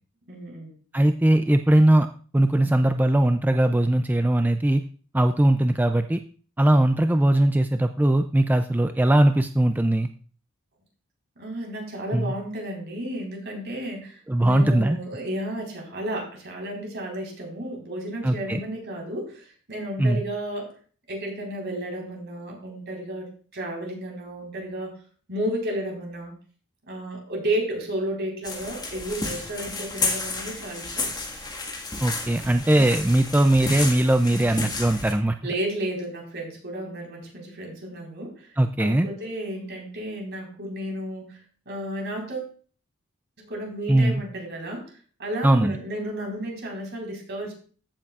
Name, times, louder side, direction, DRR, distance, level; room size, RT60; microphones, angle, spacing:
voice 1, 0.3-0.7 11.4-20.7 21.1-25.0 25.3-26.3 26.9-31.5 34.3-34.7 35.4-41.4 41.7-42.5 43.4-44.8 45.2-47.5, right 1 dB, 60° right, 0 dB, 4.2 m, -33 dB
voice 2, 0.9-2.1 2.3-4.8 5.1-6.2 6.6-10.1 12.1-12.3 14.3-15.0 18.2-18.6 20.0-20.2 32.0-35.4 38.6-39.1 43.9-44.2 45.4-45.8, right 1 dB, 10° right, 7 dB, 0.3 m, -20 dB
sound 1, 28.4-35.1, left 3 dB, 20° left, 1.6 m, -32 dB
15.0 x 7.2 x 2.4 m, 0.41 s
head